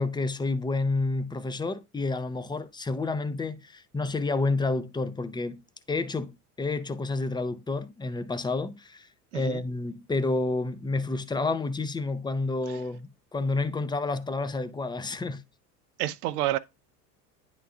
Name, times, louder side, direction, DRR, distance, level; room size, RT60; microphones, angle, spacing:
voice 1, 0.0-5.6 5.9-6.3 6.6-9.1 9.3-15.4, left 3 dB, 10° left, 0.6 m, -29 dB
voice 2, 16.0-16.6, right 14 dB, 70° right, 0.7 m, -28 dB
10.0 x 3.8 x 2.4 m
hypercardioid pair, 75°, 48 cm